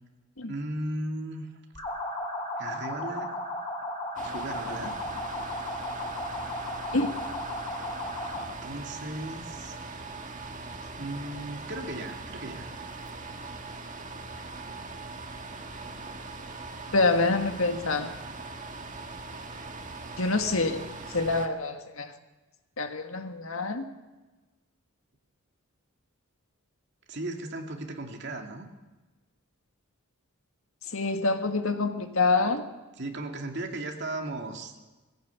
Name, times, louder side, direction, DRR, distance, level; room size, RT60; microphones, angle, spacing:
voice 1, 0.5-1.5 2.6-3.3 4.2-5.0 8.3-9.8 11.0-12.7 27.1-28.7 33.0-34.7, right 1 dB, 50° right, 2.4 m, -36 dB
sound 1, 1.7-8.6, left 1 dB, 20° left, 4.6 m, -35 dB
sound 2, 4.2-21.5, right 3 dB, 35° right, 1.7 m, -41 dB
voice 2, 16.9-18.1 20.2-20.8 21.1-22.1 22.8-23.8 30.9-32.6, left 3 dB, 70° left, 1.8 m, -26 dB
20.5 x 16.0 x 8.4 m
head